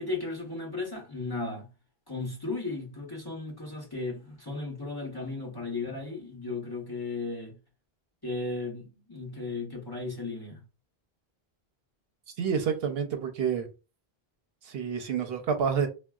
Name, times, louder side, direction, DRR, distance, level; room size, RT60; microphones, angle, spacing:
voice 1, 0.0-1.7 2.1-7.6 8.2-10.6, left 3 dB, 25° left, 0.7 m, -35 dB
voice 2, 12.4-13.7 14.6-15.9, right 7 dB, 75° right, 0.8 m, -28 dB
3.7 x 2.2 x 2.3 m
omnidirectional pair, 1.0 m